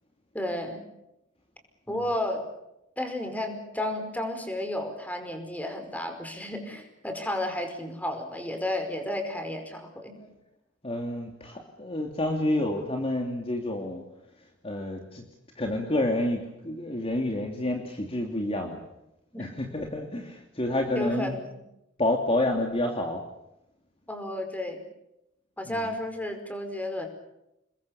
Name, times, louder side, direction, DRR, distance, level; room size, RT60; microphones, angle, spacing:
voice 1, 0.3-0.8 1.9-2.4 3.0-10.2 19.3-19.5 20.9-21.5 24.1-24.8 25.6-27.1, left 1 dB, 10° left, 6 dB, 4.9 m, -32 dB
voice 2, 10.8-14.0 14.6-15.2 15.5-18.8 19.3-21.3 22.0-23.2 25.6-25.9, left 1 dB, 30° left, 2 dB, 2.9 m, -29 dB
29.5 x 21.5 x 7.1 m, 0.86 s
head